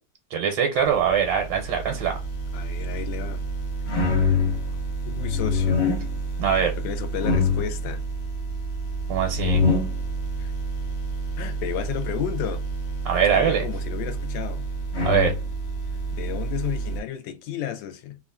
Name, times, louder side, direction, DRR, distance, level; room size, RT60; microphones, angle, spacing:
voice 1, 0.3-2.2 6.4-6.7 9.1-9.6 13.0-13.6 15.0-15.3, right 8 dB, 80° right, 1.2 m, -22 dB
sound 1, 1.6-17.0, left 1 dB, 55° left, 0.7 m, -27 dB
voice 2, 2.5-3.4 5.1-5.8 6.8-8.0 10.4-10.5 11.4-12.6 13.3-14.6 16.1-18.2, left 10 dB, 85° left, 1.3 m, -32 dB
3.0 x 2.4 x 2.3 m
omnidirectional pair, 2.0 m